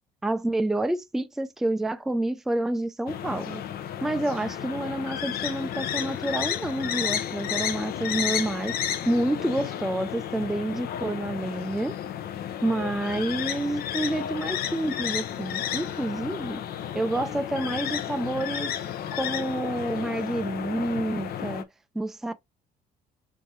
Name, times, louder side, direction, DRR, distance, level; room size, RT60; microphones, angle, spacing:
voice 1, 0.2-3.6 4.0-8.8 9.1-12.0 12.6-16.6 16.9-18.7 19.1-21.7 21.9-22.3, right 1 dB, ahead, 0.4 m, -28 dB
sound 1, 3.1-21.6, left 10 dB, 65° left, 0.7 m, -32 dB
4.1 x 3.6 x 3.1 m
cardioid pair, 110°, 17 cm